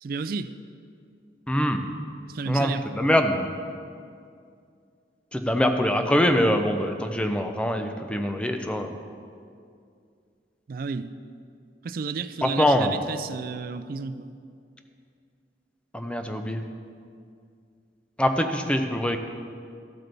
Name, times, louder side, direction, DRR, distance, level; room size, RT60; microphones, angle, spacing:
voice 1, 0.0-0.5 2.3-3.0 10.7-11.2 11.8-14.3, right 5 dB, 55° right, 12 dB, 0.3 m, -32 dB
voice 2, 1.5-1.8 2.5-3.5 5.3-8.9 12.4-12.9 15.9-16.6 18.2-19.2, left 1 dB, 5° left, 6 dB, 0.5 m, -24 dB
13.0 x 7.8 x 3.4 m, 2.3 s
head